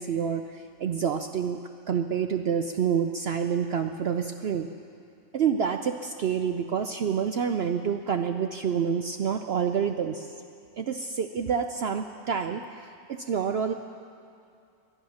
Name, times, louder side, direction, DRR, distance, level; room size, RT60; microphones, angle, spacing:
voice 1, 0.0-1.6 1.9-4.7 5.3-10.3 10.8-13.7, right 7 dB, 65° right, 6 dB, 0.6 m, -28 dB
20.0 x 11.0 x 6.3 m, 2.5 s
omnidirectional pair, 1.6 m